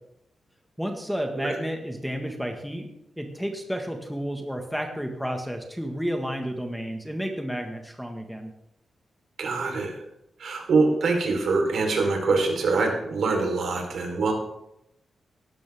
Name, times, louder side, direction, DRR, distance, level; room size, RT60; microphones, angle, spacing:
voice 1, 0.8-2.9 3.2-8.5, equal, ahead, 3 dB, 1.6 m, -31 dB
voice 2, 9.4-10.0 10.4-14.3, right 3 dB, 70° right, 2 dB, 3.9 m, -24 dB
17.5 x 12.5 x 3.6 m, 0.81 s
wide cardioid pair, 125°, 0 cm